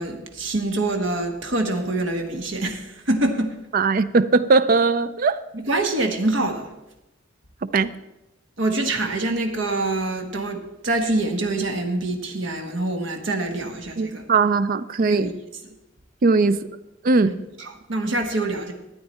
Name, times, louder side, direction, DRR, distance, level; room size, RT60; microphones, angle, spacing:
voice 1, 0.0-3.5 5.5-6.7 8.6-14.2 15.1-15.3 17.2-18.7, right 2 dB, 70° right, 1.4 m, -25 dB
voice 2, 3.7-5.4 7.7-7.9 14.0-15.3 16.2-16.6 17.0-17.3, right 4 dB, 50° right, 0.4 m, -19 dB
13.0 x 9.1 x 4.2 m
head